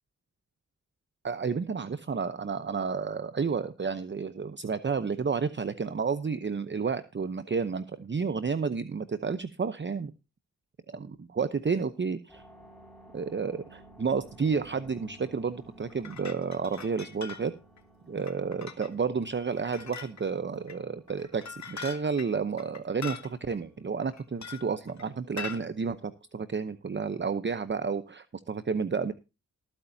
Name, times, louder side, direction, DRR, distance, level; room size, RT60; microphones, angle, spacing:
voice 1, 1.2-10.1 10.9-12.4 13.1-17.5 18.1-29.1, right 5 dB, 35° right, 12 dB, 0.8 m, -31 dB
sound 1, 12.3-27.3, right 1 dB, ahead, 6.4 m, -56 dB
sound 2, 15.9-17.5 17.8-17.9 18.2-18.9 19.5-20.3 20.7-20.8 21.1-23.3 24.1-25.0 25.4-25.6, left 6 dB, 55° left, 2.2 m, -42 dB
19.5 x 8.9 x 2.7 m, 0.28 s
cardioid pair, 70°, 33 cm